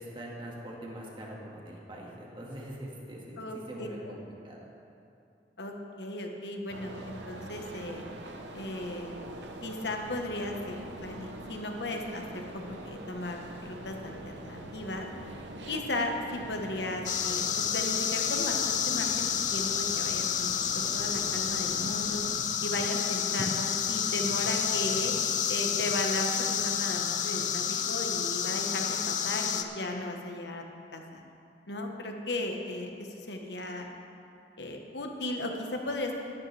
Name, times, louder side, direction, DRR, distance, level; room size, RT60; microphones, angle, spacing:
voice 1, 0.0-3.4 3.7-4.2 4.4-4.7, equal, 30° right, -3 dB, 1.9 m, -42 dB
voice 2, 3.4-3.9 5.6-8.0 8.5-9.2 9.6-15.1 15.7-22.2 22.6-25.1 25.5-30.6 30.9-31.2 31.7-33.9 34.6-36.2, left 1 dB, 75° left, 2 dB, 1.3 m, -36 dB
sound 1, 6.7-22.4, right 1 dB, 85° right, 0.9 m, -44 dB
sound 2, 17.0-29.6, left 8 dB, 45° left, 0.6 m, -30 dB
18.0 x 9.5 x 3.4 m, 2.6 s
head